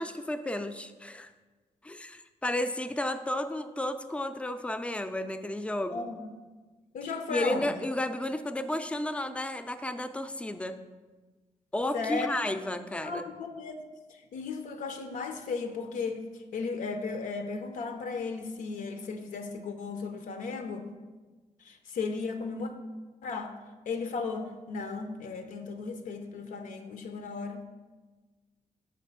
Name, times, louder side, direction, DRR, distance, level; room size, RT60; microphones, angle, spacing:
voice 1, 0.0-1.3 1.8-6.1 7.3-10.8 11.7-13.3, left 1 dB, 10° left, 9 dB, 0.3 m, -32 dB
voice 2, 5.9-6.3 6.9-7.7 11.9-12.5 13.0-13.8 14.1-16.2 16.5-20.9 21.6-22.7 23.2-23.5 23.9-27.6, left 4 dB, 90° left, 6 dB, 0.6 m, -35 dB
6.5 x 4.1 x 5.5 m, 1.3 s
wide cardioid pair, 120°, 13 cm